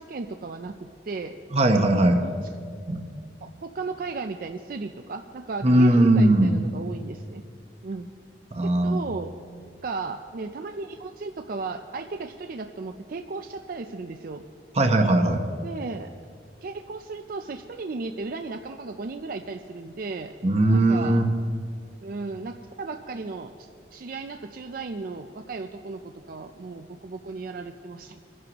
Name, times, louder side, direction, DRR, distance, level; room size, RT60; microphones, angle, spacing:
voice 1, 0.0-1.4 2.2-2.3 3.4-7.4 7.8-8.1 8.6-9.3 9.8-14.4 15.6-16.1 16.6-20.3 20.7-21.2 22.0-23.5 23.9-28.2, right 3 dB, 50° right, 6 dB, 0.4 m, -35 dB
voice 2, 1.5-2.2 2.9-3.2 5.6-6.6 8.5-9.0 14.7-15.4 20.4-21.3, right 1 dB, 35° right, 5 dB, 0.9 m, -19 dB
23.0 x 11.0 x 3.0 m, 2.2 s
head